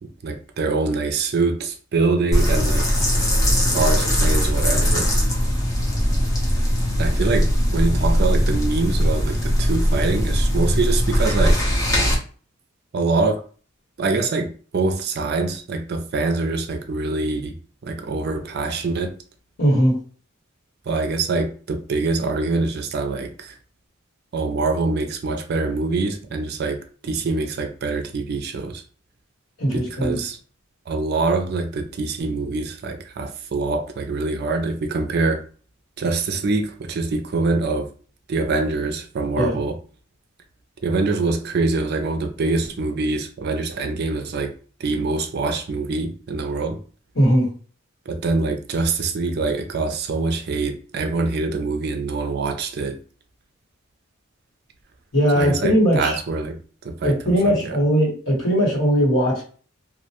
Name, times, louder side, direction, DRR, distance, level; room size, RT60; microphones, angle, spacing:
voice 1, 0.0-2.9 3.6-5.1 7.0-11.6 12.9-13.4 14.0-19.2 20.9-23.6 24.3-28.8 29.7-30.4 30.9-35.4 36.0-37.9 38.3-39.8 40.8-44.5 44.8-46.8 48.1-53.0 55.4-56.6 56.8-57.6, right 3 dB, 50° right, 0.4 m, -24 dB
sound 1, 2.3-12.1, equal, 15° left, 0.6 m, -20 dB
voice 2, 19.6-20.0 29.6-30.2 39.4-39.6 47.1-47.5 55.1-56.2 57.0-59.4, equal, 70° left, 1.3 m, -19 dB
2.4 x 2.1 x 2.9 m
head